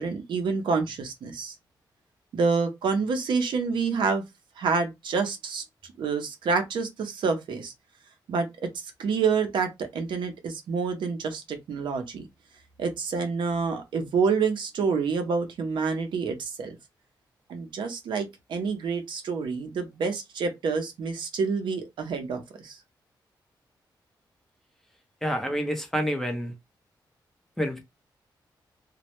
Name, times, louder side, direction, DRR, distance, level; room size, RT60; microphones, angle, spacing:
voice 1, 0.0-1.6 2.3-4.2 4.6-5.6 6.0-7.7 8.3-8.5 8.8-12.2 12.8-16.8 17.5-22.8, right 5 dB, 90° right, 0.5 m, -28 dB
voice 2, 25.2-26.5 27.6-27.8, equal, 5° left, 0.5 m, -28 dB
2.1 x 2.0 x 2.9 m
wide cardioid pair, 150°, 8 cm